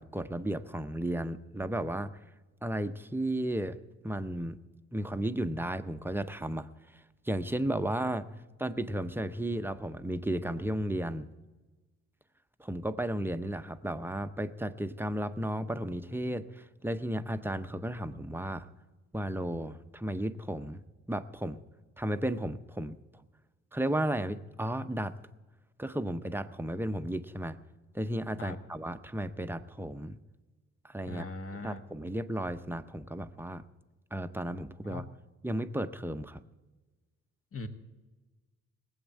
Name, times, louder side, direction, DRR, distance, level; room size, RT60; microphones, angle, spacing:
voice 1, 0.0-2.1 2.6-3.8 4.0-4.6 4.9-8.3 8.6-11.3 12.6-18.7 19.1-20.8 21.1-21.6 22.0-23.0 23.7-25.1 25.8-27.6 27.9-30.2 30.8-31.3 31.6-33.6 34.1-35.0 35.4-36.4, right 1 dB, 5° right, 10 dB, 0.7 m, -34 dB
voice 2, 31.1-31.8 34.8-35.0 37.5-37.7, left 2 dB, 45° left, 6 dB, 1.6 m, -40 dB
19.0 x 8.0 x 7.4 m, 1.2 s
cardioid pair, 90°, 30 cm